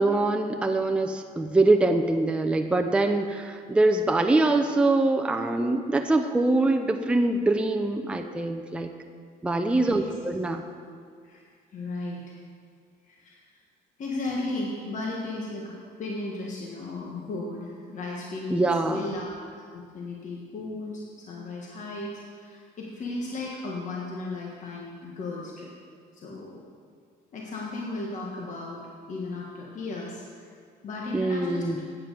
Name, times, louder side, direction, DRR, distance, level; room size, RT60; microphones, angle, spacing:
voice 1, 0.0-8.9 9.4-10.6 18.5-19.1 31.1-31.8, right 2 dB, 5° right, 4 dB, 0.5 m, -24 dB
voice 2, 9.7-10.1 11.2-12.3 13.1-13.4 14.0-25.7 26.1-26.6 27.3-28.8 29.1-30.5 30.8-31.8, left 2 dB, 45° left, -2 dB, 1.4 m, -35 dB
8.7 x 8.6 x 5.1 m, 2.1 s
cardioid pair, 110°, 17 cm